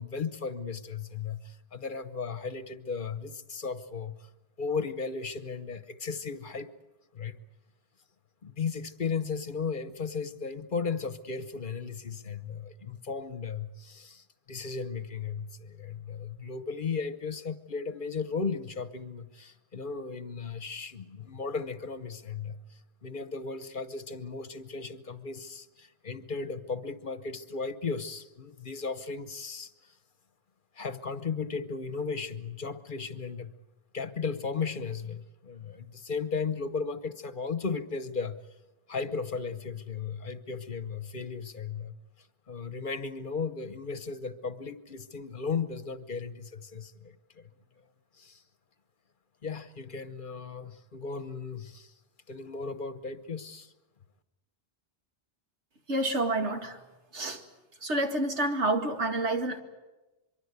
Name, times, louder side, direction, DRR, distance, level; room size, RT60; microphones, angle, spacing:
voice 1, 0.0-4.3 4.6-6.7 7.1-7.4 8.4-29.9 30.7-33.5 33.9-38.4 38.9-47.5 48.1-48.4 49.4-51.9 52.3-53.7, left 5 dB, 50° left, 12 dB, 1.1 m, -36 dB
voice 2, 55.9-56.8 57.1-57.4 57.8-59.6, right 2 dB, 85° right, 4 dB, 2.5 m, -28 dB
24.0 x 23.5 x 8.2 m, 1.1 s
omnidirectional pair, 1.1 m